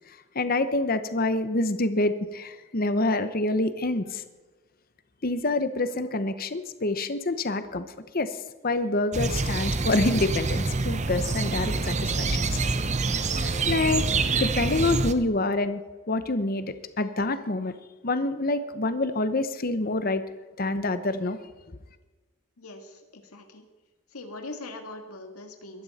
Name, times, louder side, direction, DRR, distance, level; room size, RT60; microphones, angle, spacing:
voice 1, 0.3-4.2 5.2-7.8 8.1-8.3 8.6-12.5 13.3-14.0 14.3-15.8 16.1-17.7 18.0-20.2 20.6-21.4, left 2 dB, 40° left, 11 dB, 0.9 m, -26 dB
sound 1, 9.1-15.1, right 3 dB, 30° right, 0.7 m, -26 dB
voice 2, 22.6-23.6 24.1-25.8, left 2 dB, 85° left, 4 dB, 1.9 m, -41 dB
22.0 x 12.5 x 4.2 m, 1.2 s
head